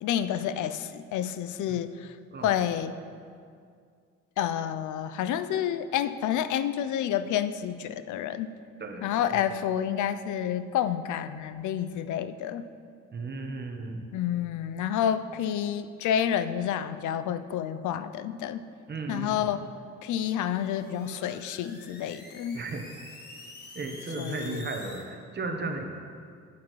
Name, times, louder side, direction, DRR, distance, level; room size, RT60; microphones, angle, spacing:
voice 1, 0.0-3.0 4.4-8.5 9.0-12.7 14.1-18.6 19.1-19.7 20.0-22.6 24.2-24.7, left 10 dB, 75° left, 12 dB, 0.5 m, -29 dB
voice 2, 8.8-9.4 13.1-14.1 18.9-19.5 22.5-22.8 23.7-25.9, right 3 dB, 35° right, 3 dB, 1.0 m, -35 dB
sound 1, 20.2-25.0, left 2 dB, 35° left, 1.4 m, -47 dB
8.6 x 8.5 x 3.1 m, 2.2 s
cardioid pair, 90°, 30 cm